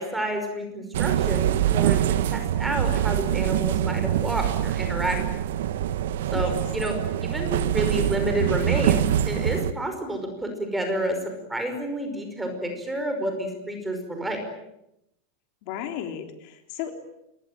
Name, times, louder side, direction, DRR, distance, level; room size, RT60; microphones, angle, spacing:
voice 1, 0.0-2.0 2.3-5.2 6.3-7.0 7.2-11.2 11.5-14.4, right 1 dB, 5° right, 5 dB, 5.3 m, -29 dB
sound 1, 0.9-9.7, right 11 dB, 80° right, 1.3 m, -24 dB
voice 2, 15.6-16.9, left 10 dB, 50° left, 5 dB, 3.4 m, -35 dB
27.0 x 22.0 x 9.1 m, 0.85 s
supercardioid pair, 165°, 0 cm